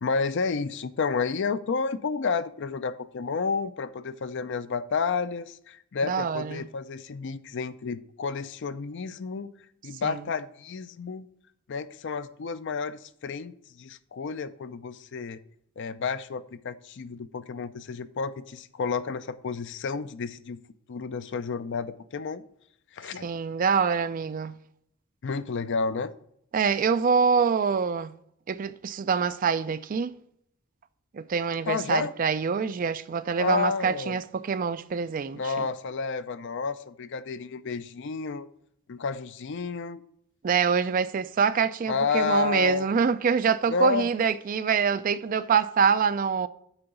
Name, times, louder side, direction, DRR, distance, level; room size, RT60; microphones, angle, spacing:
voice 1, 0.0-9.5 9.8-11.3 11.7-15.4 15.8-20.6 20.9-22.4 22.9-23.3 25.2-26.1 31.7-32.1 33.4-34.2 35.3-38.5 38.9-40.0 41.9-42.9 43.7-44.1, left 5 dB, 55° left, 0.4 m, -31 dB
voice 2, 6.0-6.6 10.0-10.2 23.2-24.5 26.5-28.1 28.5-30.2 31.1-35.7 40.4-46.5, right 6 dB, 40° right, 0.3 m, -25 dB
8.9 x 3.9 x 7.0 m
head